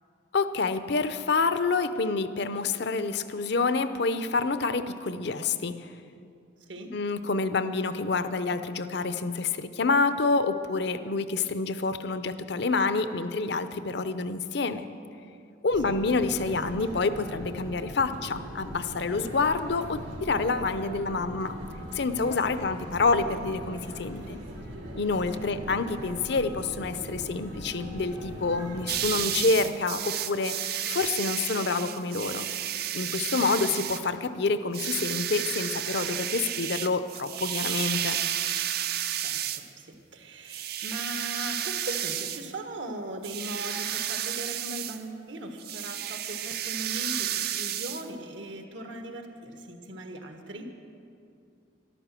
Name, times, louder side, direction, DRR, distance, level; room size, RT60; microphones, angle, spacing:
voice 1, 0.3-5.9 6.9-14.9 15.6-21.5 21.9-24.4 25.0-32.5 32.9-38.2, left 4 dB, 60° left, 11 dB, 0.6 m, -28 dB
sound 1, 15.7-29.1, equal, 90° right, 3.4 m, -40 dB
voice 2, 22.2-22.6 25.3-25.5 33.3-33.5 38.8-38.9 39.1-50.7, right 1 dB, 70° right, 5 dB, 1.5 m, -39 dB
sound 2, 28.9-34.1 34.7-39.7 40.5-42.5 43.2-45.0 45.6-48.0, right 11 dB, 55° right, 0.6 m, -32 dB
13.0 x 11.5 x 7.6 m, 2.5 s
head